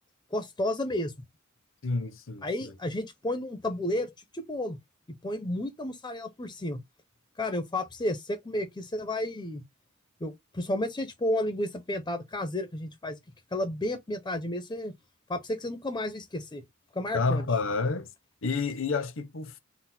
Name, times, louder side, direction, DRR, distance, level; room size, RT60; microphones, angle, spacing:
voice 1, 0.3-1.1 2.4-4.8 5.1-6.8 7.4-9.6 10.2-13.2 13.5-14.9 15.3-16.6 16.9-17.4, left 1 dB, 20° left, 0.5 m, -32 dB
voice 2, 1.8-2.8 17.1-18.1 18.4-19.6, left 4 dB, 65° left, 0.7 m, -29 dB
3.9 x 2.0 x 4.1 m
head